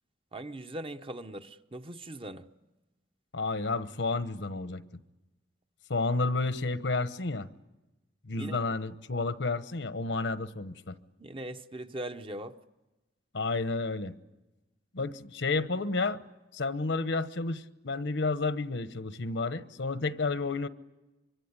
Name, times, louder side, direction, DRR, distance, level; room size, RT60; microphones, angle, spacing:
voice 1, 0.3-2.5 8.3-8.6 11.2-12.6, right 1 dB, 30° right, 0.9 m, -40 dB
voice 2, 3.3-4.8 5.9-7.5 8.2-10.9 13.3-14.1 14.9-16.2 16.5-20.7, left 3 dB, 75° left, 1.1 m, -31 dB
25.0 x 23.5 x 9.8 m
head